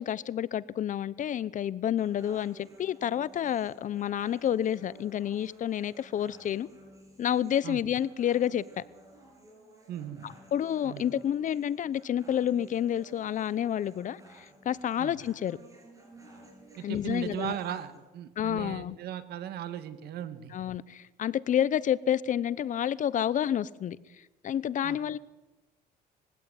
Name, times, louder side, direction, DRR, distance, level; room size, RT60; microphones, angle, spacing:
voice 1, 0.0-6.7 7.2-8.8 10.2-15.6 16.8-17.6 18.4-19.0 20.5-24.0 24.4-25.2, left 10 dB, 50° left, 0.9 m, -29 dB
sound 1, 2.0-18.0, right 1 dB, 20° right, 8.0 m, -54 dB
voice 2, 9.9-10.2 10.8-11.1 15.0-15.2 16.8-20.5 24.8-25.0, right 10 dB, 70° right, 2.1 m, -37 dB
21.5 x 16.5 x 9.5 m
cardioid pair, 110°, 17 cm